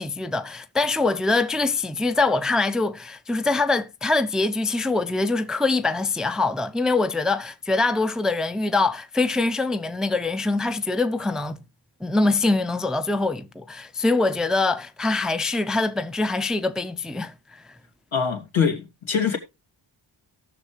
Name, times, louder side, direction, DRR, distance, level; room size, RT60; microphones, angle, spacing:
voice 1, 0.0-11.6 12.0-17.6, left 3 dB, ahead, 0.5 m, -24 dB
voice 2, 18.1-19.4, left 6 dB, 80° left, 2.5 m, -23 dB
17.5 x 6.5 x 3.2 m
wide cardioid pair, 95°, 47 cm